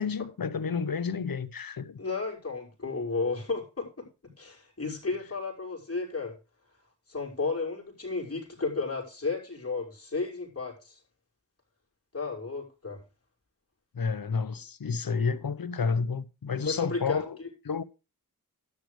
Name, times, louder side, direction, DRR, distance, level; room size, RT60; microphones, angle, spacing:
voice 1, 0.0-2.0 13.9-17.4 17.6-17.8, left 5 dB, 85° left, 1.0 m, -30 dB
voice 2, 2.0-4.1 4.4-6.3 7.1-11.0 12.1-13.0 16.6-17.3, left 4 dB, 45° left, 5.9 m, -33 dB
12.5 x 10.5 x 3.3 m
wide cardioid pair, 60°, 34 cm